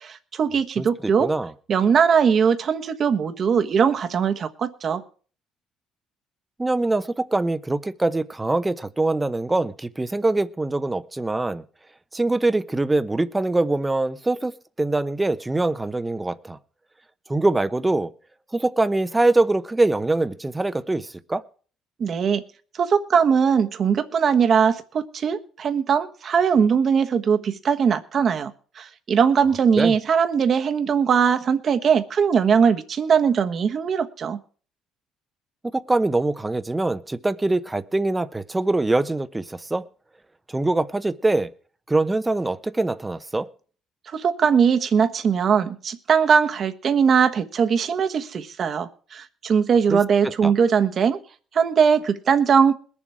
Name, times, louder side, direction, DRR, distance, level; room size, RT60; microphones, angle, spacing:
voice 1, 0.0-1.3 1.7-5.0 22.0-22.4 22.8-28.5 28.8-34.4 44.1-51.2 51.5-52.8, right 6 dB, 45° right, 7 dB, 1.2 m, -20 dB
voice 2, 0.8-1.5 6.6-11.6 12.1-14.5 14.8-16.6 17.3-18.1 18.5-21.4 29.8-29.9 35.7-39.8 40.5-41.5 41.9-43.5 49.9-50.5, right 2 dB, 15° right, 13 dB, 0.8 m, -23 dB
21.0 x 7.4 x 4.8 m, 0.41 s
cardioid pair, 105°, 0 cm